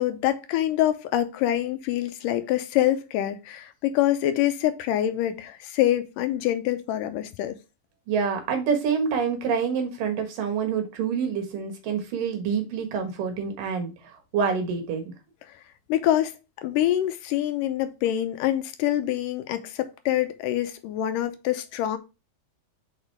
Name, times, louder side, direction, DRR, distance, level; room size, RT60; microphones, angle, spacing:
voice 1, 0.0-7.6 15.5-15.6 15.9-16.4 16.6-22.0, left 12 dB, 85° left, 2.2 m, -25 dB
voice 2, 8.1-13.9 14.3-15.1, right 6 dB, 80° right, 3.0 m, -27 dB
6.4 x 4.8 x 3.3 m
omnidirectional pair, 3.9 m